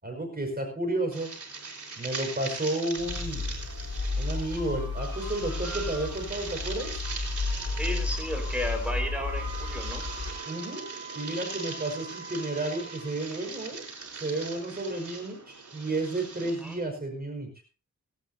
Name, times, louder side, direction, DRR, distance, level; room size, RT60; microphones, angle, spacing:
voice 1, 0.0-1.3 2.0-3.5 4.2-7.0 10.5-10.8 11.1-13.8 14.2-17.5, right 2 dB, 30° right, 2 dB, 5.3 m, -32 dB
sound 1, 1.1-16.8, right 4 dB, 70° right, 4.2 m, -41 dB
sound 2, 3.0-10.3, left 3 dB, 45° left, 4.9 m, -33 dB
voice 2, 7.8-10.0 16.4-16.8, equal, 5° right, 2 dB, 4.9 m, -33 dB
Wind instrument woodwind instrument, 9.1-13.2, right 4 dB, 25° left, 5.8 m, -44 dB
18.5 x 17.5 x 2.8 m, 0.35 s
wide cardioid pair, 100°, 31 cm